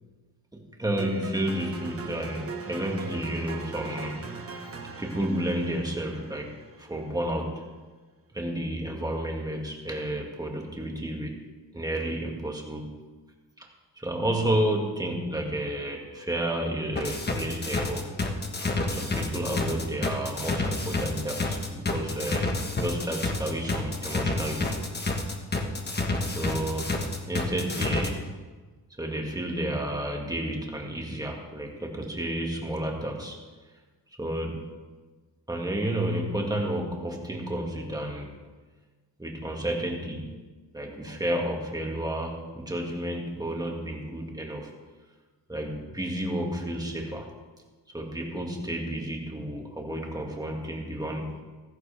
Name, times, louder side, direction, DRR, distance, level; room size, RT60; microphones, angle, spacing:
voice 1, 0.5-4.2 5.0-7.5 8.3-11.3 11.7-12.9 13.6-13.7 14.0-18.2 18.9-24.8 26.3-27.0 27.3-28.3 29.0-33.4 34.2-34.7 35.5-38.4 39.2-40.3 40.7-44.7 45.5-47.3 47.9-51.4, right 1 dB, 10° right, 0 dB, 2.0 m, -31 dB
sound 1, 1.0-7.1, right 4 dB, 35° right, 1.4 m, -41 dB
sound 2, 17.0-28.1, left 3 dB, 25° left, 1.4 m, -29 dB
15.0 x 15.0 x 3.4 m, 1.3 s
wide cardioid pair, 150°, 40 cm